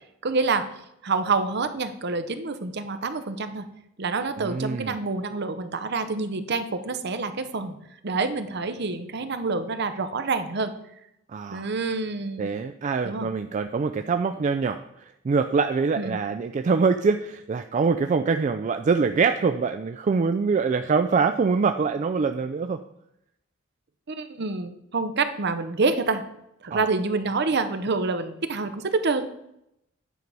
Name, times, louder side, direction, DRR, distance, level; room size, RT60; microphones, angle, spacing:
voice 1, 0.2-0.7 1.0-3.6 4.0-7.8 8.0-10.7 11.5-12.5 13.0-13.3 15.9-16.2 24.1-26.2 26.6-29.3, right 3 dB, 55° right, 10 dB, 0.7 m, -27 dB
voice 2, 4.4-5.0 11.3-11.7 12.4-22.8 26.7-26.9, right 5 dB, 35° right, 7 dB, 0.3 m, -24 dB
9.3 x 4.6 x 5.4 m, 0.81 s
head